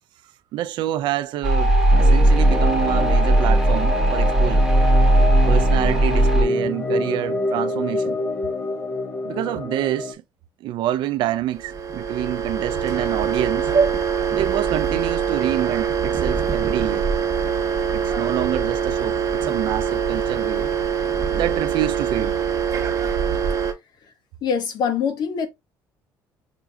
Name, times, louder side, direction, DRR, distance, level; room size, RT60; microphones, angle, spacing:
voice 1, 0.5-4.7 5.5-8.2 9.2-10.2 10.6-13.7 14.3-17.1 17.9-20.7 21.3-22.4, right 12 dB, 70° right, 0.4 m, -27 dB
sound 1, 1.4-6.4, right 1 dB, 5° right, 1.0 m, -17 dB
sound 2, 1.9-10.1, left 2 dB, 25° left, 0.9 m, -27 dB
sound 3, 11.5-23.7, right 7 dB, 45° right, 1.2 m, -23 dB
voice 2, 24.4-25.5, left 7 dB, 60° left, 0.9 m, -23 dB
5.8 x 2.7 x 2.3 m
cardioid pair, 110°, 8 cm